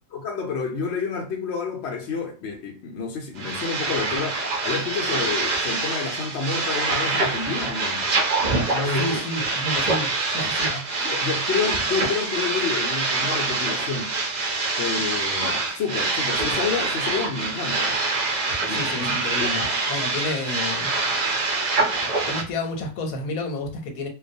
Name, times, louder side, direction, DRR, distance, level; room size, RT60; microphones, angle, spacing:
voice 1, 0.1-8.1 8.6-9.2 10.7-14.1 14.8-18.0 18.7-19.8, left 5 dB, 65° left, 0.7 m, -29 dB
sound 1, 3.4-22.4, right 3 dB, 60° right, 0.4 m, -25 dB
voice 2, 8.8-10.7 18.7-20.9 22.3-24.1, left 2 dB, 85° left, 1.1 m, -30 dB
2.3 x 2.2 x 2.6 m
omnidirectional pair, 1.5 m